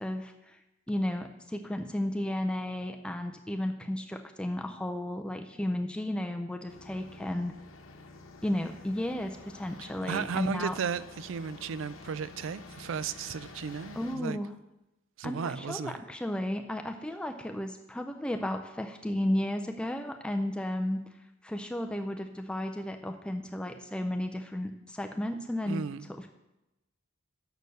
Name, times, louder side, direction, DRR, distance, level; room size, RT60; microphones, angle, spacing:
voice 1, 0.0-0.6 0.9-7.6 8.4-10.8 14.0-14.5 15.2-21.0 21.4-25.8, left 1 dB, 5° left, 0.4 m, -33 dB
sound 1, 6.7-14.2, left 3 dB, 75° left, 0.9 m, -49 dB
voice 2, 9.8-14.4 15.2-16.0 25.7-26.1, right 6 dB, 65° right, 0.4 m, -35 dB
6.7 x 6.4 x 6.5 m
head